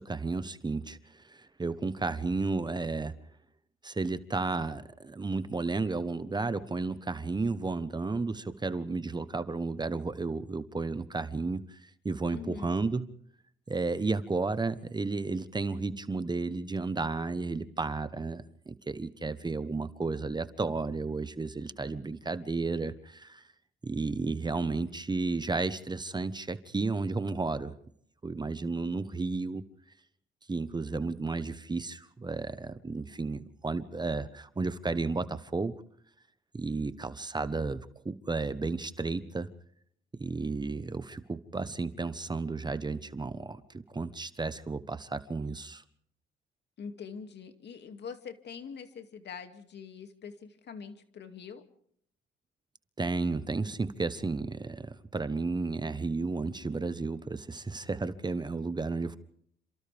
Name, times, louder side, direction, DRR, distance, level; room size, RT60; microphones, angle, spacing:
voice 1, 0.0-3.1 3.8-13.1 13.7-23.4 23.8-27.7 28.2-29.6 30.5-35.7 36.5-39.5 40.2-43.6 43.9-45.8 53.0-59.2, right 3 dB, 20° right, 13 dB, 1.1 m, -33 dB
voice 2, 12.3-12.7 46.8-51.6, left 6 dB, 60° left, 7 dB, 2.4 m, -44 dB
28.5 x 26.5 x 3.5 m, 0.66 s
cardioid pair, 90°, 20 cm